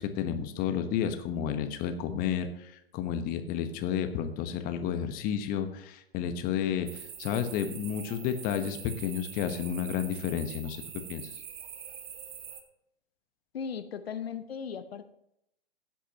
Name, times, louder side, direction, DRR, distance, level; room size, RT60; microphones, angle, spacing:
voice 1, 0.0-10.8 11.1-11.3, left 8 dB, 30° left, 8 dB, 1.0 m, -31 dB
sound 1, 6.9-12.6, right 8 dB, 20° right, 0.9 m, -44 dB
voice 2, 13.5-15.1, left 7 dB, 70° left, 10 dB, 0.9 m, -37 dB
16.0 x 8.5 x 2.8 m, 0.78 s
figure-of-eight pair, 115°, 31 cm